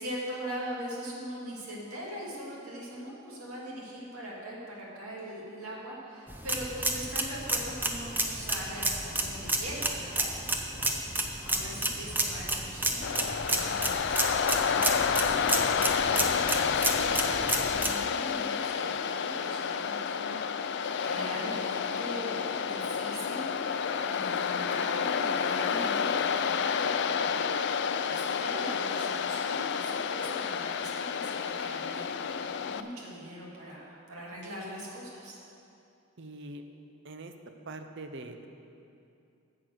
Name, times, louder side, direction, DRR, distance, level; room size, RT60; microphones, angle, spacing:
voice 1, 0.0-10.3 11.5-35.4, equal, 75° right, -4 dB, 2.3 m, -42 dB
sound 1, 6.3-17.9, right 2 dB, 10° right, 0.5 m, -31 dB
voice 2, 10.7-11.0 36.2-36.6 37.0-37.3 37.7-38.5, right 2 dB, 50° right, 7 dB, 0.7 m, -43 dB
Waves surf, 13.0-32.8, left 6 dB, 50° left, 0.3 m, -30 dB
9.1 x 7.7 x 6.3 m, 2.6 s
head